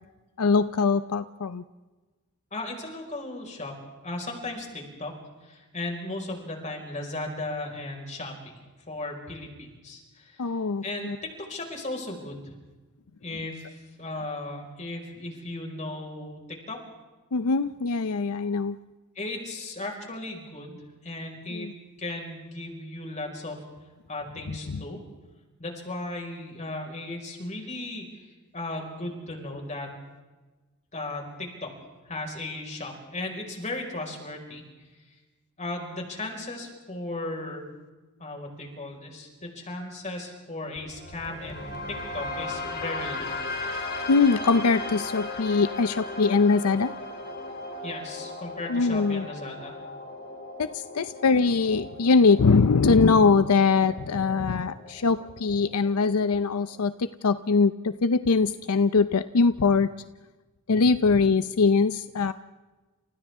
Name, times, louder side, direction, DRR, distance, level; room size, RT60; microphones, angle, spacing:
voice 1, 0.4-1.6 10.4-11.2 17.3-18.8 21.5-21.7 24.7-24.8 44.1-46.9 48.7-49.3 50.6-59.9 60.7-62.3, left 4 dB, 80° left, 12 dB, 0.6 m, -22 dB
voice 2, 2.5-8.4 8.9-10.5 10.8-12.5 13.2-16.8 19.1-21.7 22.0-23.6 24.1-25.0 25.6-28.2 28.5-29.9 30.9-31.7 32.1-34.7 35.6-37.7 38.2-43.3 47.8-49.8, left 2 dB, 35° left, 1 dB, 5.2 m, -36 dB
sound 1, 40.7-56.7, left 2 dB, 50° left, 2.8 m, -37 dB
29.5 x 29.0 x 3.6 m, 1.2 s
head